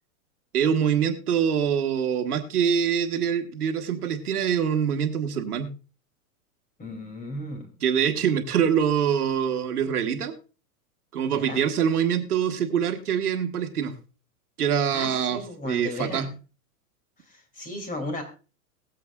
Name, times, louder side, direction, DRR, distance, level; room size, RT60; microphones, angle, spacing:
voice 1, 0.5-5.7 7.8-10.3 11.1-13.9 14.6-15.4 15.6-16.3, right 8 dB, 85° right, 5 dB, 1.7 m, -24 dB
voice 2, 6.8-7.7 11.3-11.6 14.9-16.3 17.3-18.2, left 1 dB, 20° left, 6 dB, 2.9 m, -35 dB
22.0 x 7.6 x 2.4 m, 0.35 s
hypercardioid pair, 115°, 44 cm